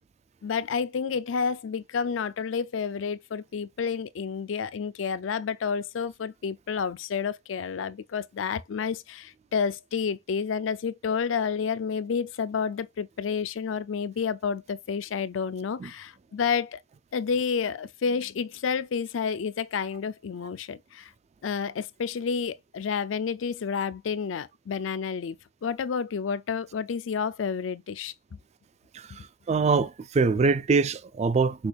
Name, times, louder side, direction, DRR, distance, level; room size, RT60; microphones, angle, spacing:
voice 1, 0.4-16.8 17.1-21.1 21.4-25.4 25.6-28.1, left 6 dB, 85° left, 0.4 m, -30 dB
voice 2, 28.9-31.7, right 4 dB, 35° right, 0.3 m, -24 dB
6.1 x 3.3 x 2.3 m
head